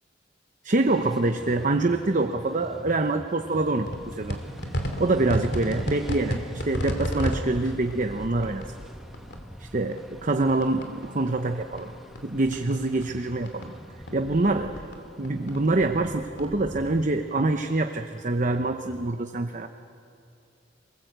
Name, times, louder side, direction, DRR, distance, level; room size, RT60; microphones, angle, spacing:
voice 1, 0.6-4.4 5.0-8.7 9.6-11.9 12.2-13.7 14.1-14.8 15.2-19.7, right 2 dB, 45° right, 7 dB, 0.8 m, -25 dB
sound 1, 0.9-19.1, equal, ahead, 1.0 m, -46 dB
sound 2, 3.9-11.1 11.4-13.7 14.0-16.9, equal, 65° left, 2.9 m, -34 dB
28.0 x 20.0 x 8.0 m, 2.6 s
head